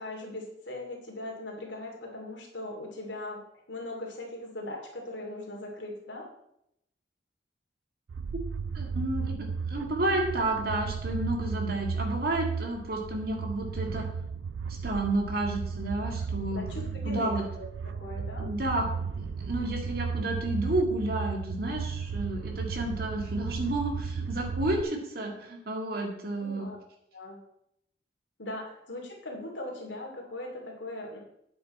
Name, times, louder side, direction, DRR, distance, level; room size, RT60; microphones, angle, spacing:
voice 1, 0.0-3.4 3.7-6.3 16.5-18.5 26.4-26.8 27.1-27.4 28.4-31.2, left 1 dB, 80° left, 0 dB, 2.6 m, -39 dB
sound 1, 8.1-24.8, right 5 dB, 90° right, 0.4 m, -34 dB
voice 2, 8.7-14.1 14.8-16.6 17.0-17.4 18.4-26.7, right 1 dB, 55° right, 2 dB, 2.0 m, -31 dB
9.4 x 7.7 x 4.3 m, 0.78 s
head